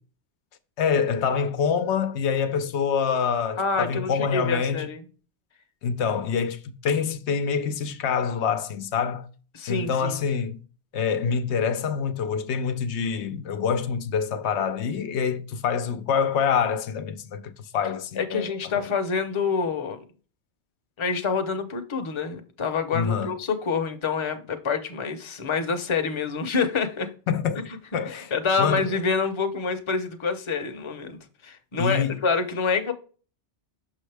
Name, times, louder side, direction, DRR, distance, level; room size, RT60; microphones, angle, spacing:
voice 1, 0.8-4.9 5.8-9.3 9.7-10.6 10.9-18.9 22.9-23.4 27.3-27.6 27.9-28.3 28.6-29.0 31.8-32.2, left 6 dB, 85° left, 0.9 m, -26 dB
voice 2, 3.6-5.0 9.5-10.2 18.2-20.0 21.0-27.1 28.1-31.2 31.4-32.9, left 5 dB, 30° left, 0.7 m, -27 dB
6.2 x 5.8 x 3.3 m
omnidirectional pair, 1.1 m